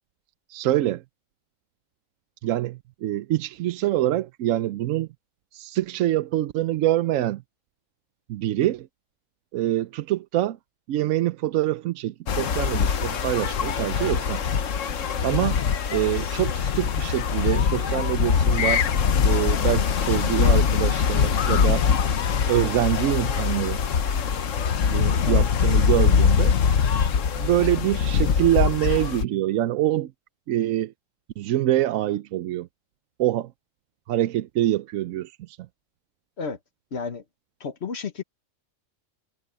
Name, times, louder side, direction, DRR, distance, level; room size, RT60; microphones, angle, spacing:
voice 1, 0.5-1.0 2.4-5.1 5.5-7.4 8.3-8.9 9.5-10.6 10.9-14.6 15.2-15.6 15.9-18.8 19.2-21.8 22.5-23.8 24.9-26.5 27.4-30.1 30.5-30.9 31.4-32.7 33.2-33.5 34.1-35.6, right 13 dB, 85° right, 1.0 m, -25 dB
sound 1, 12.3-29.3, left 7 dB, 75° left, 1.4 m, -22 dB
voice 2, 36.9-37.2 37.6-38.2, left 5 dB, 55° left, 1.4 m, -32 dB
omnidirectional pair, 1.3 m